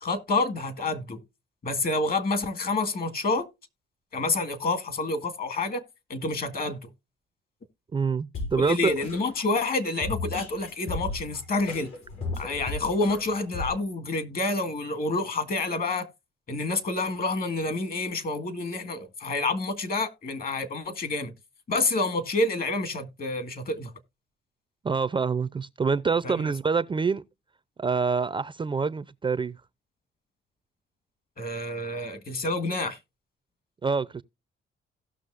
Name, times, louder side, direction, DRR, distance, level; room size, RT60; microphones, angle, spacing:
voice 1, 0.0-1.2 1.6-3.5 4.1-5.8 6.1-6.9 8.6-11.9 12.4-16.1 16.5-21.3 21.7-23.9 26.2-26.5 31.4-33.0, left 2 dB, 50° left, 1.7 m, -28 dB
voice 2, 7.9-8.9 24.8-27.2 27.8-29.6 33.8-34.2, right 5 dB, 25° right, 0.4 m, -26 dB
Drum kit, 8.3-13.7, left 3 dB, 90° left, 7.2 m, -35 dB
16.5 x 6.2 x 2.5 m
cardioid pair, 90°, 20 cm